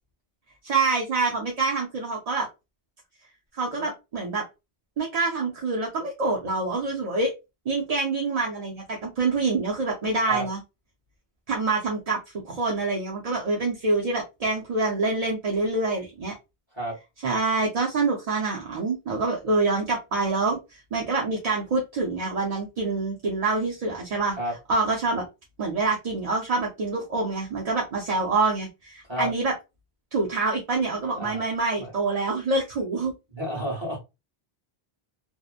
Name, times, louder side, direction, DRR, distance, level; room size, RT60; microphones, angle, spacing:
voice 1, 0.6-2.5 3.5-4.4 5.0-7.3 7.7-10.6 11.5-12.2 12.4-16.3 17.2-20.6 20.9-24.4 24.7-25.2 25.6-29.5 30.1-33.1, right 3 dB, 45° right, 0.6 m, -26 dB
voice 2, 33.3-34.0, equal, 25° right, 1.2 m, -30 dB
2.8 x 2.0 x 2.4 m
omnidirectional pair, 1.1 m